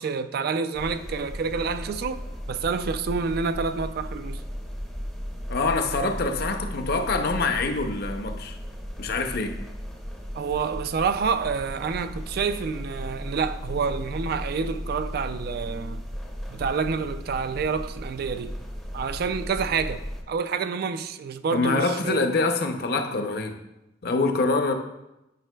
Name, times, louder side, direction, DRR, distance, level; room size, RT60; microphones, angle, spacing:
voice 1, 0.0-4.4 10.4-16.0 16.5-18.5 18.9-22.2, right 5 dB, 55° right, 0.3 m, -28 dB
sound 1, 0.7-20.2, equal, ahead, 0.6 m, -36 dB
voice 2, 5.5-8.6 9.0-9.6 21.5-23.5 24.0-24.7, left 3 dB, 55° left, 0.6 m, -25 dB
9.1 x 5.7 x 2.2 m
head